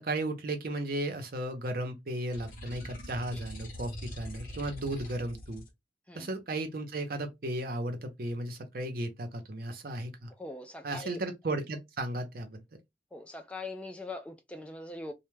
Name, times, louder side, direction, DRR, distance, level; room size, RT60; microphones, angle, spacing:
voice 1, 0.0-5.6 6.1-10.3 10.8-12.6, right 1 dB, 55° right, 0.6 m, -35 dB
sound 1, 2.3-5.7, equal, 50° left, 0.7 m, -43 dB
voice 2, 10.4-11.2 13.1-15.1, left 2 dB, 5° left, 0.3 m, -42 dB
2.2 x 2.1 x 3.1 m
head